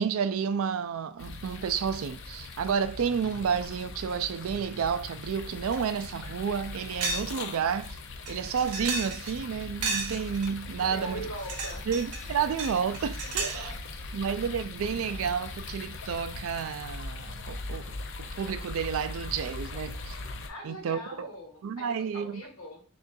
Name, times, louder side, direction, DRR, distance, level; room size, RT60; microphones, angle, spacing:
voice 1, 0.0-8.0 8.3-11.3 11.9-13.7 14.1-20.2 20.6-21.3 21.6-22.4, right 7 dB, 70° right, 0.3 m, -31 dB
sound 1, 1.2-20.5, left 3 dB, 55° left, 0.5 m, -40 dB
sound 2, 5.7-5.8 6.2-6.3 7.0-7.3 7.6-7.7 8.3-9.4 9.8-10.5 11.2-12.2 12.6-13.7, right 3 dB, 85° right, 0.8 m, -33 dB
voice 2, 10.8-11.8 13.3-13.8 20.5-22.8, equal, 80° left, 1.5 m, -41 dB
6.4 x 2.4 x 2.6 m
head